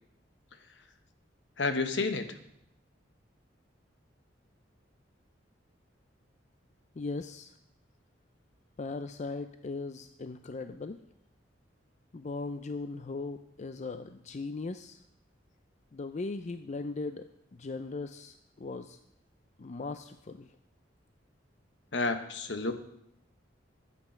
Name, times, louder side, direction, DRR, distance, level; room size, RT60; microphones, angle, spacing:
voice 1, 1.6-2.4 21.9-22.7, left 3 dB, 70° left, 8 dB, 1.1 m, -30 dB
voice 2, 7.0-7.5 8.8-11.0 12.1-15.0 15.9-19.0 19.6-20.5, left 3 dB, 40° left, 9 dB, 0.4 m, -38 dB
12.0 x 8.4 x 5.7 m, 0.78 s
head